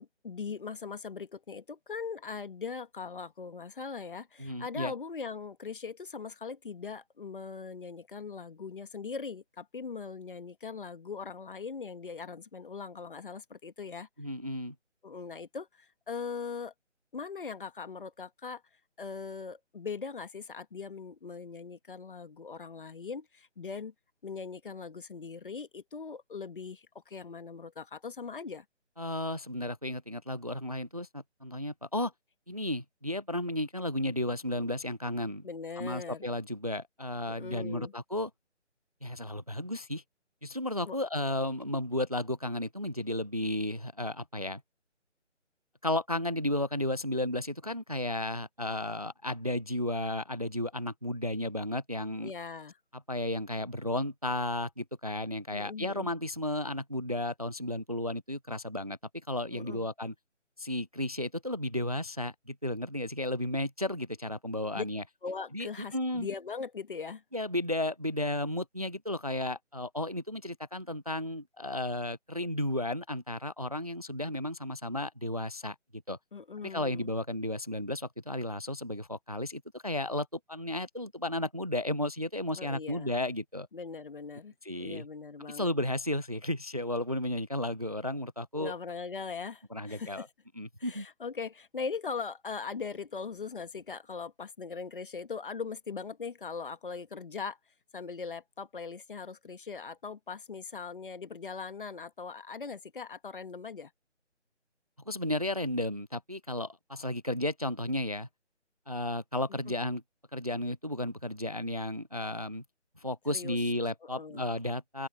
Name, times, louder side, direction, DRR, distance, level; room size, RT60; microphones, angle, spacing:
voice 1, 0.0-14.1 15.0-16.7 17.1-18.6 19.0-23.9 24.2-28.6 35.4-36.3 37.3-37.9 40.8-41.0 52.2-52.7 55.5-56.1 59.5-59.9 64.7-64.8 65.2-67.2 76.3-77.1 82.6-83.1 83.7-84.5 84.8-85.7 88.6-90.3 90.8-97.6 97.9-103.9 109.7-109.8 113.3-113.6 114.0-114.4, left 5 dB, 45° left, 1.6 m, -40 dB
voice 2, 4.4-4.9 14.2-14.7 29.0-32.1 32.5-35.5 35.8-38.3 39.0-40.0 40.4-44.6 45.8-52.3 53.1-59.0 59.3-60.1 60.6-65.0 65.5-66.3 67.3-76.2 76.6-83.7 84.6-85.1 85.5-88.7 89.7-90.3 90.6-91.1 105.1-108.3 108.9-110.0 110.3-112.6 113.0-115.1, left 1 dB, 35° right, 0.4 m, -33 dB
open air
figure-of-eight pair, 155°, 36 cm